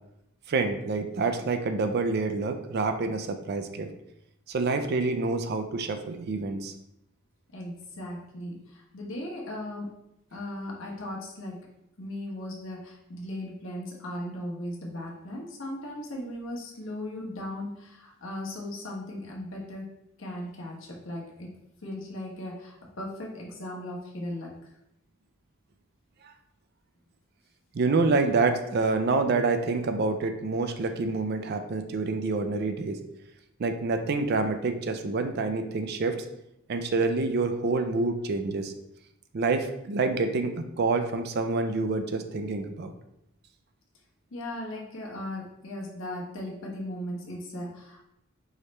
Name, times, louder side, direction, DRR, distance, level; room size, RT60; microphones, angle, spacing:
voice 1, 0.5-3.9 4.5-6.7 27.7-33.0 33.6-36.2 36.7-38.7 39.3-42.9, right 3 dB, 50° right, 7 dB, 0.4 m, -27 dB
voice 2, 7.5-9.9 10.3-11.7 12.0-19.9 20.2-21.6 21.8-24.5 44.3-48.0, left 1 dB, 70° left, -2 dB, 1.1 m, -37 dB
4.7 x 3.1 x 3.2 m, 0.83 s
head